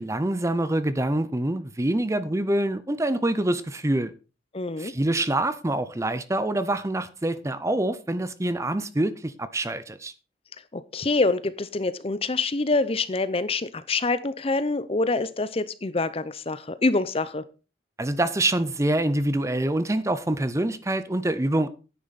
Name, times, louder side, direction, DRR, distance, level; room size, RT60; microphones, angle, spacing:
voice 1, 0.0-4.1 4.8-10.1 18.0-21.7, right 1 dB, 15° right, 0.6 m, -25 dB
voice 2, 4.5-4.9 10.7-17.4, left 3 dB, 35° left, 0.7 m, -26 dB
9.8 x 9.6 x 4.1 m
head